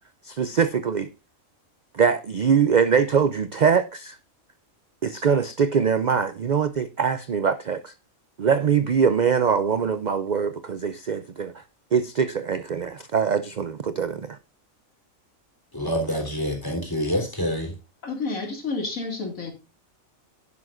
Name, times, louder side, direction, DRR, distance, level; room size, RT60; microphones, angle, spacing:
voice 1, 0.3-1.1 1.9-4.2 5.0-7.9 8.4-11.5 11.9-14.4, right 6 dB, 50° right, 0.5 m, -23 dB
voice 2, 15.7-17.7, equal, 15° left, 3.4 m, -26 dB
voice 3, 18.0-19.5, left 3 dB, 80° left, 3.0 m, -30 dB
11.0 x 11.0 x 2.5 m
omnidirectional pair, 1.4 m